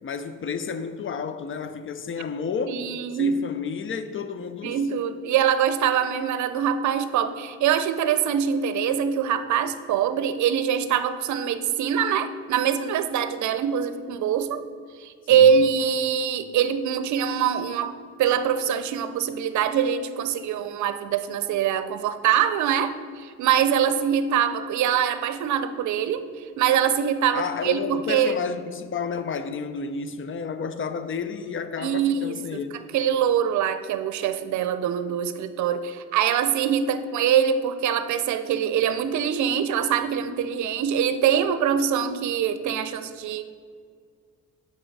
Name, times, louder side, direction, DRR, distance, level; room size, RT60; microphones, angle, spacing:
voice 1, 0.0-2.8 3.1-4.8 15.3-15.5 27.3-32.7, left 5 dB, 40° left, 0.6 m, -31 dB
voice 2, 2.7-3.4 4.6-14.6 15.0-28.4 31.8-32.6 32.9-43.5, right 8 dB, 70° right, 0.6 m, -24 dB
8.7 x 5.5 x 4.7 m
cardioid pair, 90°, 30 cm